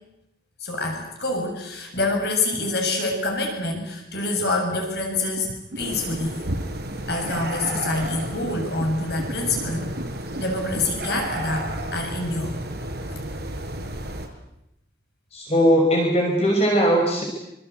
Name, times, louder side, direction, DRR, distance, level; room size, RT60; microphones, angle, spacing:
voice 1, 0.6-5.5 5.8-6.4 7.1-9.9 10.4-12.5, left 2 dB, 65° left, 2 dB, 7.2 m, -26 dB
sound 1, 5.3-11.2, right 1 dB, 90° right, 2.1 m, -36 dB
sound 2, 5.8-14.3, right 1 dB, 60° right, 5.6 m, -33 dB
voice 2, 15.3-17.2, equal, 35° left, 1 dB, 5.9 m, -19 dB
27.0 x 26.0 x 8.4 m, 0.86 s
head